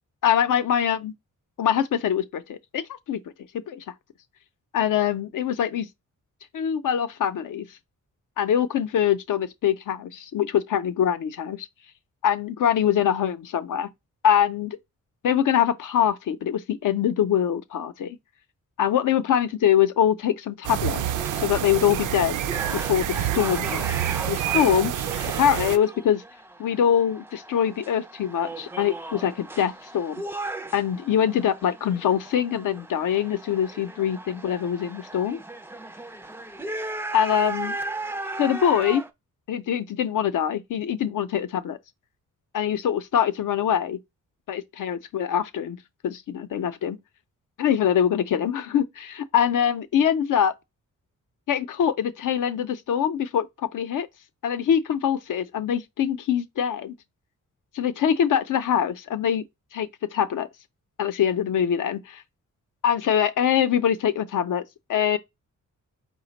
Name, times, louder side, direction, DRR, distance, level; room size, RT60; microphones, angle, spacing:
voice 1, 0.2-1.1 1.6-3.2 3.7-3.8 4.7-5.9 6.5-7.7 8.4-11.7 12.2-13.9 14.2-14.8 15.2-18.2 18.8-21.0 21.4-22.4 22.7-23.8 24.3-24.9 25.4-26.2 26.6-30.2 30.7-35.4 37.1-37.8 38.4-39.0 39.5-41.8 42.5-44.0 44.5-45.8 46.0-47.0 47.6-50.5 51.5-53.5 53.7-54.1 54.4-56.9 57.7-59.4 59.7-60.5 61.0-62.2 62.8-64.6 64.9-65.2, left 9 dB, 75° left, 0.6 m, -23 dB
sound 1, 20.6-25.8, right 11 dB, 70° right, 0.5 m, -28 dB
sound 2, 21.1-39.1, right 2 dB, 10° right, 0.3 m, -36 dB
5.0 x 2.1 x 3.9 m
wide cardioid pair, 170°, 32 cm